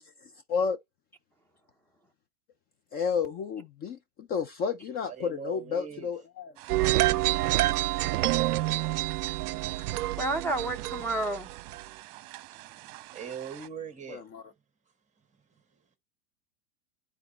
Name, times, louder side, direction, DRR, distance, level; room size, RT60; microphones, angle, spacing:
voice 1, 2.9-6.5 14.1-14.4, left 6 dB, 20° left, 0.4 m, -31 dB
voice 2, 5.0-6.1 12.8-14.2 15.2-15.8, right 7 dB, 15° right, 1.3 m, -42 dB
sound 1, 6.6-13.7, right 18 dB, 45° right, 1.0 m, -48 dB
sound 2, 6.7-11.8, right 17 dB, 80° right, 0.5 m, -27 dB
voice 3, 9.8-11.5, right 2 dB, 5° left, 0.8 m, -31 dB
9.7 x 4.0 x 4.2 m
hypercardioid pair, 120°, 45 cm